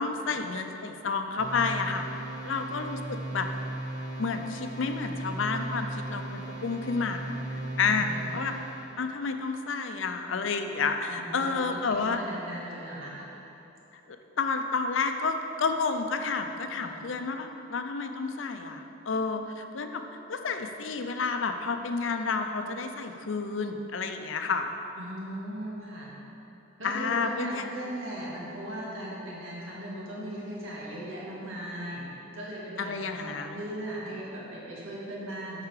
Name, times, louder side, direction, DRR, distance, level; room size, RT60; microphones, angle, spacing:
voice 1, 0.0-2.0 2.4-3.5 4.2-8.5 9.0-12.2 14.1-20.0 20.3-24.7 26.8-27.6 32.8-33.6, left 4 dB, 70° left, 6 dB, 0.5 m, -30 dB
sound 1, 1.4-8.9, right 1 dB, 40° right, 1.5 m, -37 dB
voice 2, 7.9-8.2 11.1-13.5 16.8-17.0 25.0-26.1 26.8-32.0 32.3-35.7, right 1 dB, 90° right, -5 dB, 1.9 m, -38 dB
8.2 x 5.7 x 4.9 m, 3.0 s
head